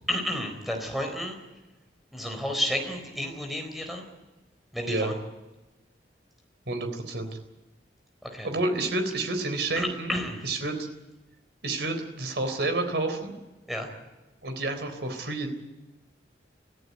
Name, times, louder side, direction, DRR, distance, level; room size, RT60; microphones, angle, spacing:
voice 1, 0.1-1.4 2.1-4.1 4.7-5.1 8.2-8.5 9.8-10.5 13.7-13.9, equal, ahead, 4 dB, 4.2 m, -31 dB
voice 2, 6.7-7.4 8.4-10.1 10.4-10.9 11.6-13.3 14.4-15.5, right 2 dB, 65° right, 7 dB, 3.9 m, -29 dB
24.5 x 14.5 x 9.8 m, 1.1 s
head